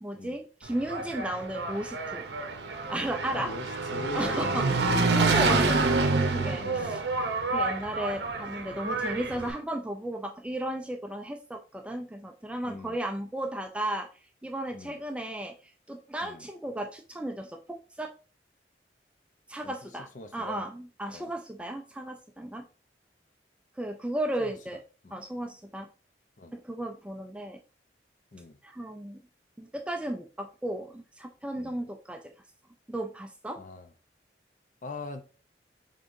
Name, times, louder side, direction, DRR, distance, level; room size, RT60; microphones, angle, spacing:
voice 1, 0.0-2.3 2.9-3.5 4.1-7.0 7.5-14.1 14.4-15.5 15.9-18.1 19.5-22.7 23.8-24.8 25.1-25.9 26.5-27.6 28.6-29.2 29.6-32.2 32.9-33.6, right 1 dB, 5° right, 0.3 m, -35 dB
Engine, 0.7-9.5, right 3 dB, 70° right, 0.6 m, -28 dB
voice 2, 3.3-4.9 6.5-7.0 12.6-13.0 14.7-15.0 16.2-16.4 19.6-19.7 20.1-20.6 21.1-21.3 24.4-24.5 25.0-25.2 26.4-26.5 28.3-28.6 31.6-31.8 33.6-33.9 34.8-35.2, left 2 dB, 45° left, 0.5 m, -41 dB
5.2 x 3.6 x 2.6 m
head